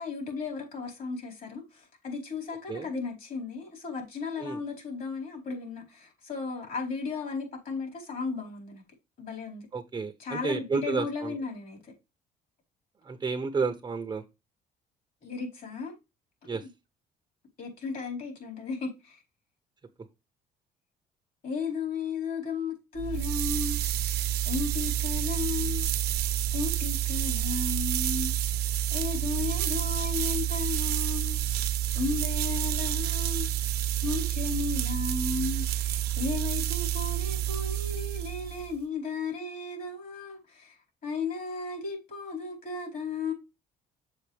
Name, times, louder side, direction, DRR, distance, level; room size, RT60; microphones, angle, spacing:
voice 1, 0.0-8.8 9.2-9.7 10.2-11.9 15.2-15.9 16.6-16.7 17.6-19.2 21.4-25.9 26.5-28.6 28.9-33.5 34.0-43.3, left 4 dB, 55° left, 4.5 m, -35 dB
voice 2, 9.7-11.3 13.0-14.2 16.5-16.6, right 4 dB, 25° right, 0.7 m, -31 dB
sound 1, 23.0-38.7, right 12 dB, 70° right, 0.9 m, -29 dB
7.0 x 5.5 x 3.3 m
cardioid pair, 110°, 17 cm